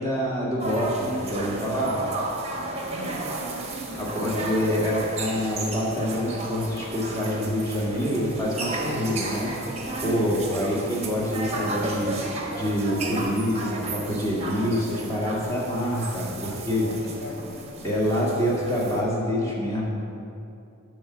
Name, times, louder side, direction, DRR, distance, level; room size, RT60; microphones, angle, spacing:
voice 1, 0.0-2.0 4.0-9.5 10.0-16.9 17.8-19.9, equal, 15° left, -6 dB, 1.8 m, -26 dB
sound 1, 0.6-19.0, right 2 dB, 30° right, 0.9 m, -33 dB
voice 2, 2.9-3.8 10.1-10.5 16.8-17.7, left 1 dB, 60° left, -2 dB, 1.4 m, -39 dB
10.0 x 3.6 x 7.1 m, 2.7 s
head